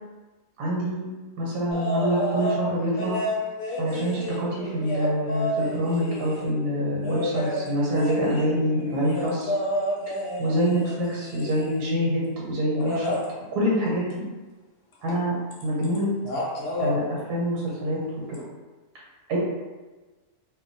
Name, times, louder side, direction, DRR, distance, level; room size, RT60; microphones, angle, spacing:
voice 1, 0.6-1.1 1.4-3.2 3.8-9.5 10.4-13.1 13.5-14.2 15.0-15.3 15.6-16.1 16.8-18.0 18.3-18.4 18.9-19.0 19.3-19.4, equal, 85° right, -5 dB, 1.3 m, -25 dB
sound 1, 1.7-2.6 3.0-6.5 7.0-11.9 12.7-13.2 15.1-15.2 15.5-16.0 16.2-16.9 18.3-18.4, equal, 70° left, 1.1 m, -30 dB
2.9 x 2.2 x 2.5 m, 1.2 s
omnidirectional pair, 1.6 m